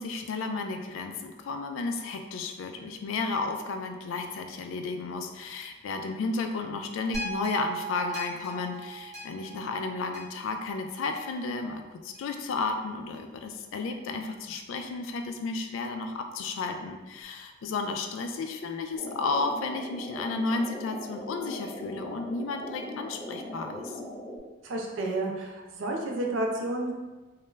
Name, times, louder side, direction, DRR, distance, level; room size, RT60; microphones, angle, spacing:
voice 1, 0.0-24.0, left 3 dB, 85° left, 6 dB, 0.3 m, -33 dB
sound 1, 7.1-11.5 12.1-12.2, right 3 dB, 20° left, 1.1 m, -39 dB
sound 2, 19.0-24.4, left 1 dB, ahead, 0.4 m, -40 dB
voice 2, 24.6-26.9, right 2 dB, 75° right, 0 dB, 0.5 m, -31 dB
2.2 x 2.1 x 3.1 m, 1.2 s
head